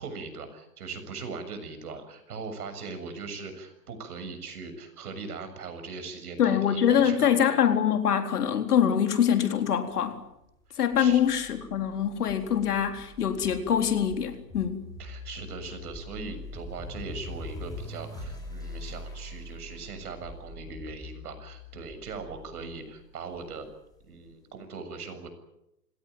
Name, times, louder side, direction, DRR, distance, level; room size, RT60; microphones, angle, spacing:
voice 1, 0.0-7.6 10.7-11.2 15.0-23.7 24.0-25.3, right 4 dB, 65° right, 9 dB, 7.2 m, -40 dB
voice 2, 6.4-10.2 10.8-14.9, left 9 dB, 65° left, 6 dB, 4.1 m, -24 dB
sound 1, 10.9-24.1, left 2 dB, 10° left, 4.8 m, -43 dB
27.5 x 17.5 x 9.3 m, 0.86 s
hypercardioid pair, 140°, 49 cm